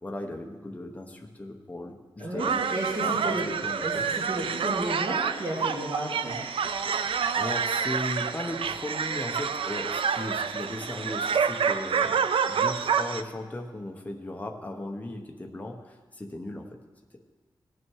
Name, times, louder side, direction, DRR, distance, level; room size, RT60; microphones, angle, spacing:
voice 1, 0.0-2.6 3.0-4.1 6.8-16.7, left 1 dB, 15° left, 2 dB, 1.0 m, -37 dB
voice 2, 2.2-3.5 3.8-6.4, right 1 dB, 55° right, -7 dB, 2.6 m, -32 dB
sound 1, 2.4-13.2, right 6 dB, 80° right, 0.4 m, -28 dB
18.0 x 6.1 x 4.7 m, 1.3 s
wide cardioid pair, 145°, 9 cm